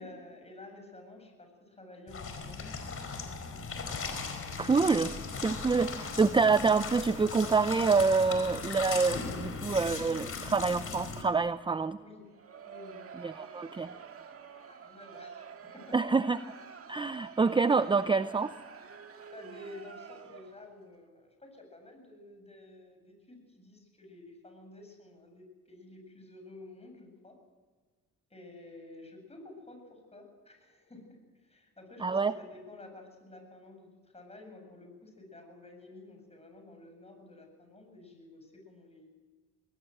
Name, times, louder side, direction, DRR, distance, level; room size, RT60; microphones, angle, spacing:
voice 1, 0.0-2.8 4.9-5.1 12.0-12.2 12.7-13.0 13.4-14.0 14.6-16.0 17.8-18.1 19.3-27.4 28.3-39.1, left 2 dB, 20° left, 4 dB, 8.0 m, -51 dB
sound 1, 2.1-11.2, left 4 dB, 45° left, 4.7 m, -38 dB
voice 2, 4.6-5.1 5.4-12.0 13.2-13.9 15.9-16.4 16.9-18.5 32.0-32.3, right 4 dB, 15° right, 13 dB, 0.6 m, -26 dB
Crowd, 12.2-20.7, right 6 dB, 50° right, 1.9 m, -49 dB
21.0 x 19.0 x 7.9 m, 1.4 s
cardioid pair, 90°, 30 cm